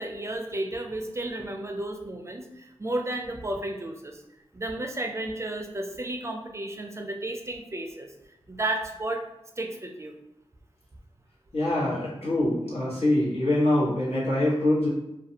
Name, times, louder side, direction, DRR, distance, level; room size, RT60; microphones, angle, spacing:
voice 1, 0.0-4.2 4.5-8.1 8.5-9.2 9.6-10.2, right 1 dB, 25° right, 3 dB, 0.4 m, -33 dB
voice 2, 11.5-14.9, left 1 dB, 80° left, -8 dB, 1.2 m, -24 dB
2.5 x 2.3 x 2.7 m, 0.87 s
cardioid pair, 55°, 10 cm